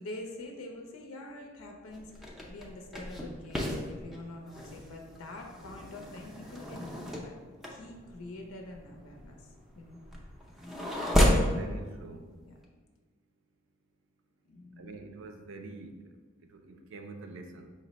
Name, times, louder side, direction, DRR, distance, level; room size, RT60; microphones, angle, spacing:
voice 1, 0.0-7.3 7.7-10.0 12.4-12.5 14.5-14.9, left 1 dB, 90° left, 2 dB, 0.6 m, -45 dB
sound 1, 1.9-11.6, equal, ahead, 0.4 m, -32 dB
voice 2, 11.1-12.3 14.8-17.7, right 3 dB, 65° right, 5 dB, 0.5 m, -45 dB
5.2 x 2.1 x 4.0 m, 1.5 s
head